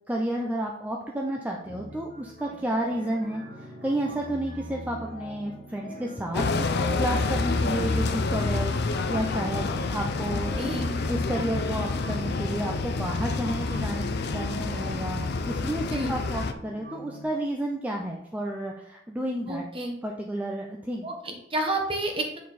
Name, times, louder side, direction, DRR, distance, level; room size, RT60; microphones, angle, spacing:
voice 1, 0.1-6.7 7.0-10.6 11.1-15.2 15.5-19.6 20.0-21.1, right 1 dB, 10° right, 0 dB, 0.5 m, -31 dB
sound 1, 1.6-17.2, equal, 50° right, 1.8 m, -42 dB
sound 2, 6.3-16.5, left 3 dB, 55° left, 0.5 m, -28 dB
voice 2, 10.6-10.9 15.9-16.1 19.5-19.9 21.0-22.4, right 1 dB, 25° right, 2 dB, 1.2 m, -30 dB
8.2 x 4.6 x 4.2 m, 0.79 s
head